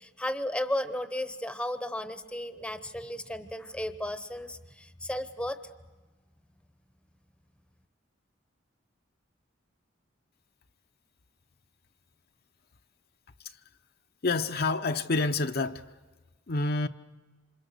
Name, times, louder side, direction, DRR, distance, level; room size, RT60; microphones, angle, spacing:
voice 1, 0.0-5.6, left 1 dB, 5° left, 0.9 m, -34 dB
voice 2, 14.2-15.8 16.5-16.9, left 3 dB, 50° left, 0.8 m, -28 dB
28.0 x 27.0 x 6.6 m
head